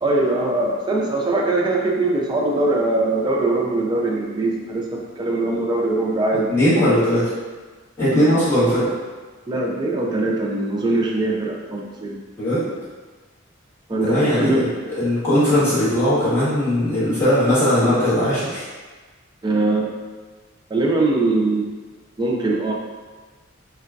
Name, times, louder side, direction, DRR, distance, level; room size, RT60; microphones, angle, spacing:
voice 1, 0.0-6.5 9.5-12.2 13.9-14.7 19.4-20.0 20.7-21.6 22.2-22.7, right 2 dB, 20° right, -2 dB, 0.4 m, -21 dB
voice 2, 6.5-7.3 8.0-8.9 12.4-12.6 14.0-18.6, equal, 10° left, -14 dB, 1.4 m, -19 dB
3.7 x 2.3 x 2.4 m, 1.4 s
head